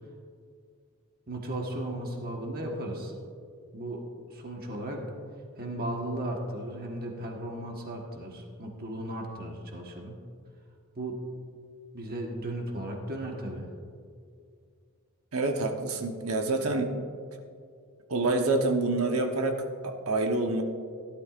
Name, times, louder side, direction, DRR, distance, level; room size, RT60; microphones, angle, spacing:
voice 1, 1.3-3.1 3.7-4.0 4.3-5.0 5.6-10.2 10.9-11.2 11.9-13.7, right 1 dB, 45° right, 1 dB, 1.4 m, -35 dB
voice 2, 15.3-16.9 18.1-20.6, right 2 dB, 70° right, 4 dB, 1.1 m, -27 dB
16.5 x 11.5 x 2.5 m, 2.2 s
head